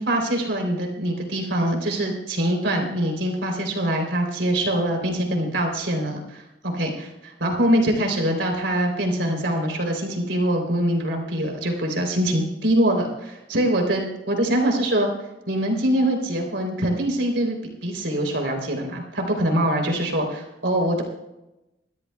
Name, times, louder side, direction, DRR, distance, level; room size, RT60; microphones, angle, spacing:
voice 1, 0.0-15.1 15.5-17.6 17.8-21.0, right 1 dB, 80° right, 2 dB, 3.6 m, -23 dB
27.0 x 13.0 x 2.4 m, 0.95 s
head